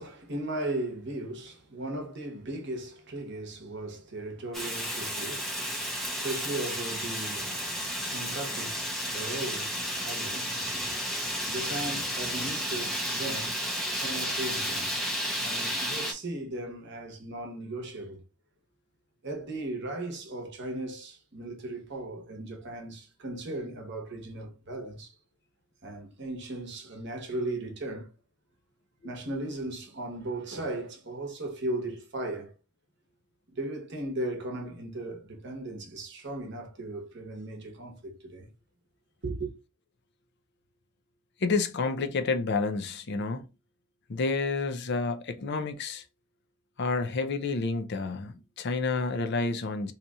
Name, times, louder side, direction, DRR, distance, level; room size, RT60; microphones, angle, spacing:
voice 1, 0.0-5.6 6.1-7.5 8.0-8.8 9.1-9.7 10.0-10.7 11.5-13.5 13.9-14.9 15.4-18.2 19.2-25.1 25.8-28.1 29.0-32.5 33.5-38.5 39.2-39.5, right 1 dB, 55° right, 0.9 m, -37 dB
Fire, 4.5-16.1, equal, ahead, 0.6 m, -32 dB
voice 2, 41.4-43.5 44.1-46.0 46.8-49.9, left 3 dB, 50° left, 0.4 m, -29 dB
2.8 x 2.4 x 3.9 m
head